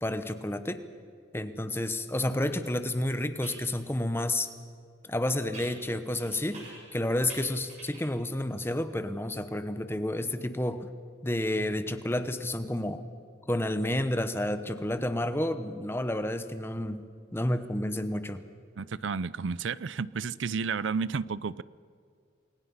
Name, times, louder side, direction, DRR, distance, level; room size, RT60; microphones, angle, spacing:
voice 1, 0.0-0.9 1.3-4.5 5.1-6.6 6.9-10.9 11.2-13.1 13.5-18.4, left 1 dB, 10° left, 10 dB, 1.0 m, -30 dB
sound 1, 2.5-2.6 3.4-3.7 5.5-7.0 7.3-8.2, right 3 dB, 35° right, 6.1 m, -48 dB
voice 2, 18.8-21.6, right 5 dB, 75° right, 19 dB, 0.5 m, -31 dB
29.0 x 22.0 x 5.7 m, 2.3 s
head